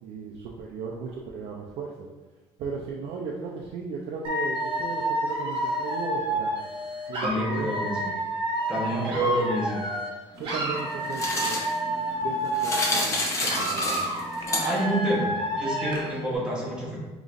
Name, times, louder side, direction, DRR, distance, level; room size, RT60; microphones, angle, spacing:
voice 1, 0.0-2.1 2.6-6.5 7.1-8.2 8.9-9.4 10.4-11.6 11.9-14.2, right 5 dB, 65° right, -3 dB, 0.5 m, -36 dB
Dog / Alarm, 4.2-10.1 10.4-13.1 13.4-16.2, right 1 dB, 50° right, 1.0 m, -29 dB
voice 2, 7.2-8.0 8.7-9.8 14.5-17.0, right 1 dB, 10° right, -5 dB, 1.1 m, -28 dB
sound 1, 10.4-15.1, left 2 dB, 30° left, 0.7 m, -30 dB
5.1 x 3.0 x 2.5 m, 1.2 s
cardioid pair, 150°, 11 cm